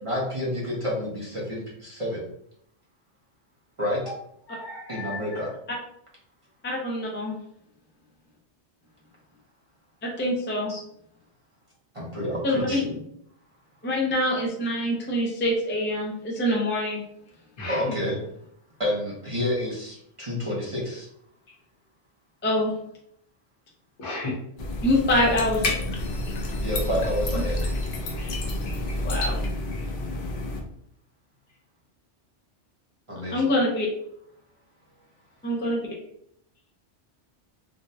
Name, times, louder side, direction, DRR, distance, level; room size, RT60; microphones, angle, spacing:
voice 1, 0.0-2.3 3.8-4.0 4.9-5.5 10.7-10.8 11.9-12.9 17.7-18.2 18.8-21.1 26.6-27.6 33.1-33.5, left 1 dB, 30° right, -6 dB, 0.7 m, -29 dB
voice 2, 4.5-5.2 17.6-17.7 24.0-24.3 28.2-28.3 28.7-28.8, left 2 dB, 75° left, -4 dB, 1.3 m, -34 dB
voice 3, 6.6-7.4 10.0-10.7 12.4-12.8 13.8-17.0 22.4-22.7 24.8-25.7 29.0-29.4 33.3-33.9 35.4-35.9, left 1 dB, 20° left, -2 dB, 0.3 m, -25 dB
sound 1, 24.6-30.6, left 1 dB, 55° left, 0.7 m, -29 dB
3.6 x 2.2 x 2.7 m, 0.72 s
omnidirectional pair, 1.2 m